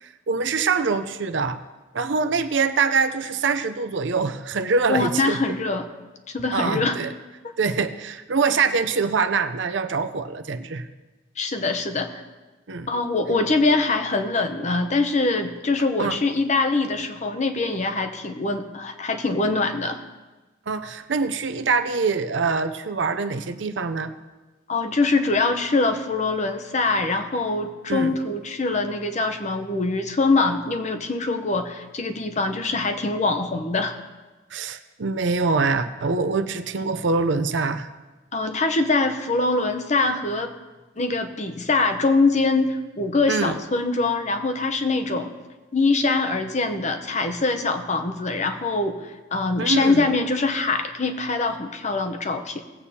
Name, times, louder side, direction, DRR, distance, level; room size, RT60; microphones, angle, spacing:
voice 1, 0.0-1.6 1.9-5.4 6.5-7.1 7.6-10.8 12.7-12.9 16.0-16.2 20.7-24.1 27.9-28.1 34.5-37.9 43.3-43.6 49.6-50.1, right 4 dB, 75° right, 9 dB, 0.6 m, -24 dB
voice 2, 4.9-5.9 6.3-7.0 11.4-12.2 12.9-20.0 24.7-34.0 38.3-40.5 41.0-45.3 45.7-52.6, left 3 dB, 40° left, 7 dB, 0.8 m, -23 dB
18.5 x 8.1 x 2.8 m, 1.2 s
head